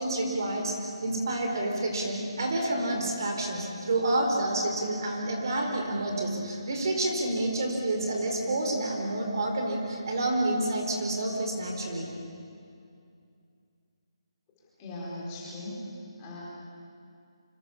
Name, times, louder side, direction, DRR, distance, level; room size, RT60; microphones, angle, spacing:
voice 1, 0.0-12.1, right 1 dB, 45° right, 1 dB, 4.5 m, -29 dB
voice 2, 14.8-16.4, left 1 dB, 15° left, -6 dB, 4.6 m, -39 dB
26.0 x 25.5 x 7.3 m, 2.4 s
hypercardioid pair, 175°, 3 cm